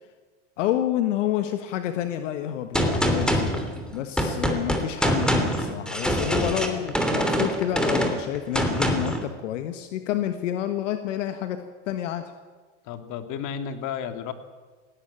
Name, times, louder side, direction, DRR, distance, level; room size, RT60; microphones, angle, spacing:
voice 1, 0.6-12.2, left 11 dB, 80° left, 8 dB, 1.5 m, -29 dB
Gunshot gunfire, 2.7-9.2, equal, ahead, 3.1 m, -24 dB
voice 2, 12.8-14.3, left 8 dB, 55° left, 7 dB, 2.5 m, -32 dB
18.5 x 17.5 x 8.8 m, 1.4 s
supercardioid pair, 105°, 37 cm